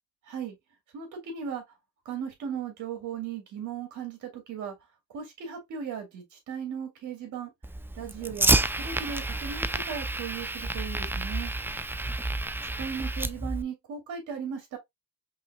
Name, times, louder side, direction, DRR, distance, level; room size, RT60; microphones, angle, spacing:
voice 1, 0.9-1.6 2.1-4.7 5.1-7.5 8.0-11.5 12.8-14.8, right 7 dB, 80° right, 2.2 m, -37 dB
Fire, 7.6-13.6, right 2 dB, 5° right, 0.4 m, -29 dB
5.5 x 3.1 x 2.2 m
cardioid pair, 90°, 30 cm